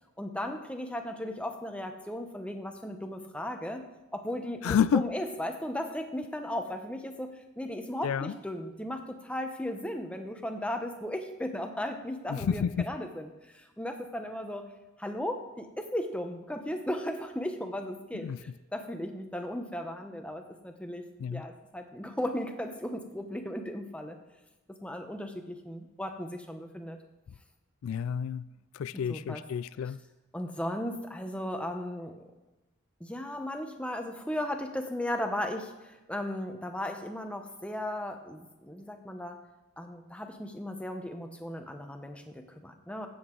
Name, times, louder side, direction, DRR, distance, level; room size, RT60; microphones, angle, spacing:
voice 1, 0.2-3.9 4.1-14.7 15.0-21.0 21.3-24.2 24.7-27.0 29.1-29.4 30.3-32.2 33.0-39.4 39.8-43.1, left 1 dB, 5° left, 5 dB, 0.8 m, -36 dB
voice 2, 4.6-5.1 8.0-8.3 12.3-12.9 18.1-18.4 21.2-21.5 27.8-28.5 28.7-30.0, left 7 dB, 75° left, 16 dB, 0.3 m, -29 dB
15.0 x 7.9 x 3.8 m, 1.1 s
head